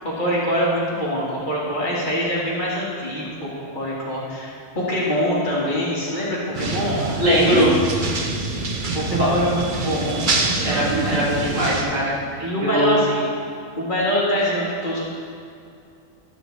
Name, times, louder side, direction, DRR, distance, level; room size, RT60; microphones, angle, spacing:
voice 1, 0.0-7.7 8.9-10.3 12.4-13.3 13.8-15.0, equal, 35° left, -7 dB, 2.3 m, -24 dB
sound 1, 6.5-11.8, right 3 dB, 45° right, 0.9 m, -25 dB
voice 2, 7.2-7.7 9.2-9.3 10.6-12.1 12.6-12.9, equal, 70° right, -8 dB, 2.5 m, -20 dB
12.0 x 7.9 x 3.4 m, 2.4 s
omnidirectional pair, 1.4 m